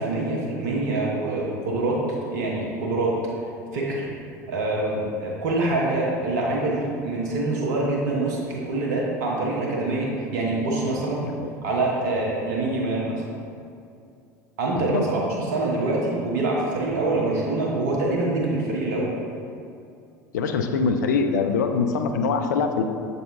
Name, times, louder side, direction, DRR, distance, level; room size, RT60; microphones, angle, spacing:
voice 1, 0.0-3.2 3.7-4.1 4.5-11.2 11.6-13.2 14.6-19.1, right 2 dB, 70° right, -3 dB, 1.0 m, -25 dB
voice 2, 14.7-15.1 20.3-22.8, left 5 dB, 80° left, 6 dB, 0.4 m, -23 dB
6.9 x 4.1 x 3.6 m, 2.5 s
hypercardioid pair, 75°, 10 cm